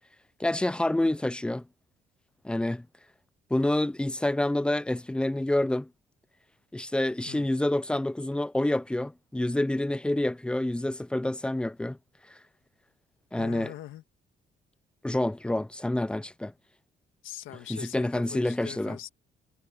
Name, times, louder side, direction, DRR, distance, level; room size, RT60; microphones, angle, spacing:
voice 1, 0.4-1.6 2.4-2.9 3.5-5.9 6.7-12.0 13.3-13.7 15.0-16.5 17.7-19.0, left 1 dB, 5° left, 0.4 m, -28 dB
voice 2, 13.4-14.0 17.2-19.1, left 13 dB, 85° left, 1.7 m, -42 dB
cardioid pair, 90°, 20 cm